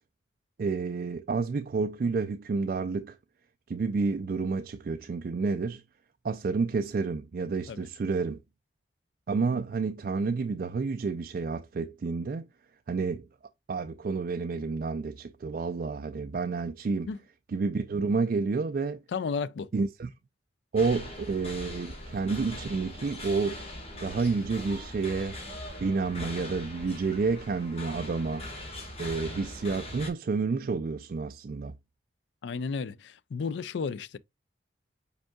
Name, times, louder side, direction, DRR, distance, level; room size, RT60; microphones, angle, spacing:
voice 1, 0.6-3.2 3.7-5.8 6.2-8.4 9.3-12.4 12.9-13.3 13.7-17.1 17.5-19.0 19.7-20.1 20.7-23.6 24.0-25.4 25.8-28.4 29.0-31.7, right 4 dB, 50° right, 0.3 m, -30 dB
voice 2, 19.1-19.7 32.4-34.2, left 5 dB, 75° left, 0.4 m, -33 dB
sound 1, 20.7-30.1, left 1 dB, 35° left, 1.5 m, -41 dB
5.1 x 4.6 x 2.2 m
head